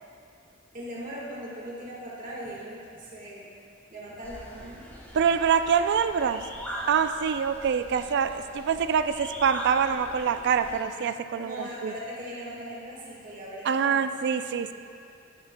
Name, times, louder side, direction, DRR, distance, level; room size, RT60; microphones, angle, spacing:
voice 1, 0.7-3.5 3.9-4.8 11.3-14.0, equal, 40° right, -5 dB, 1.6 m, -39 dB
sound 1, 4.2-10.8, equal, 10° left, 1.4 m, -40 dB
voice 2, 5.1-6.4 6.9-11.9 13.7-14.7, right 7 dB, 55° right, 11 dB, 0.4 m, -25 dB
12.5 x 11.0 x 2.2 m, 2.5 s
head